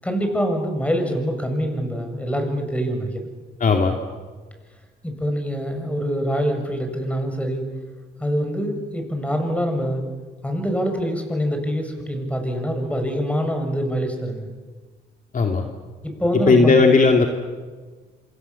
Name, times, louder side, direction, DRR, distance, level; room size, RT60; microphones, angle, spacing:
voice 1, 0.0-3.3 5.0-7.6 8.2-10.0 10.4-14.5 16.0-16.9, equal, 5° left, 5 dB, 6.9 m, -25 dB
voice 2, 3.6-4.0 15.3-15.6 16.5-17.3, left 4 dB, 40° left, 3 dB, 2.7 m, -15 dB
27.5 x 26.5 x 7.4 m, 1.4 s
cardioid pair, 90°, 20 cm